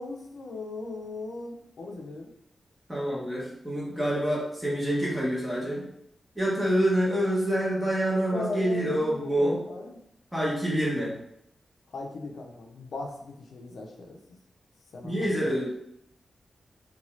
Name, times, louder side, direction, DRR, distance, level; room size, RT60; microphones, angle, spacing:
voice 1, 0.0-2.3 8.3-10.0 11.9-14.2 14.9-15.6, left 2 dB, 85° left, 0 dB, 0.4 m, -38 dB
voice 2, 2.9-5.9 6.4-9.7 10.3-11.1 15.0-15.7, equal, 5° right, -6 dB, 0.8 m, -27 dB
2.6 x 2.3 x 3.0 m, 0.76 s
wide cardioid pair, 175°, 0 cm